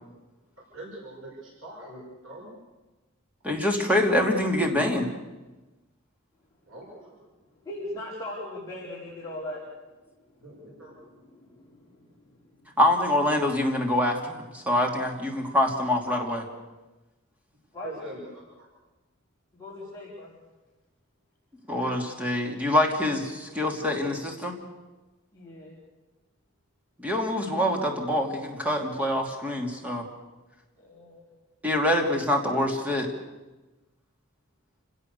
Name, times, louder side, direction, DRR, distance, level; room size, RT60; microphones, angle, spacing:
voice 1, 0.7-2.5 6.7-7.1 10.4-11.0 17.8-18.7, right 1 dB, 80° right, -3 dB, 6.8 m, -43 dB
voice 2, 3.4-5.1 12.8-16.4 21.7-24.5 27.0-30.0 31.6-33.1, left 1 dB, 5° right, 1 dB, 2.9 m, -25 dB
voice 3, 7.6-9.6 10.5-12.7 17.7-17.9 19.5-20.3 25.3-25.7 30.8-31.2, left 1 dB, 15° left, -8 dB, 4.8 m, -40 dB
29.5 x 17.5 x 6.9 m, 1.2 s
head